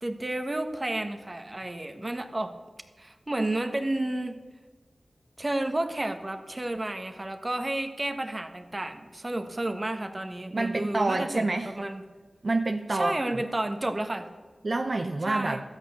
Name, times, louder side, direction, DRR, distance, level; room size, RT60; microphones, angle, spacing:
voice 1, 0.0-2.5 3.0-4.4 5.4-12.0 12.9-14.3 15.3-15.6, right 1 dB, 35° right, 7 dB, 1.4 m, -31 dB
voice 2, 10.5-11.7 12.4-13.1 14.6-15.6, right 2 dB, 55° right, 6 dB, 0.7 m, -27 dB
13.0 x 9.1 x 6.8 m, 1.3 s
cardioid pair, 50°, 0 cm